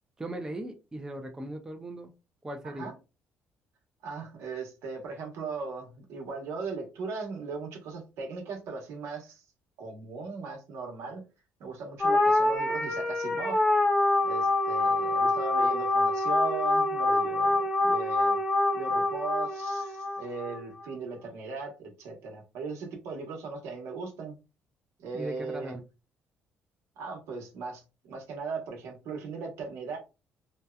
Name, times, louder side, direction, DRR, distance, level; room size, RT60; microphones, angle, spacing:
voice 1, 0.2-2.1 2.4-2.9 25.1-25.8, right 1 dB, 10° right, 4 dB, 0.4 m, -38 dB
voice 2, 4.0-9.4 9.8-11.2 11.6-13.6 14.2-18.4 18.7-24.3 25.0-25.7 27.0-30.0, right 4 dB, 80° right, 2 dB, 0.9 m, -38 dB
sound 1, 12.0-20.6, left 2 dB, 20° left, 0.8 m, -26 dB
2.7 x 2.2 x 2.3 m, 0.28 s
cardioid pair, 125°, 5 cm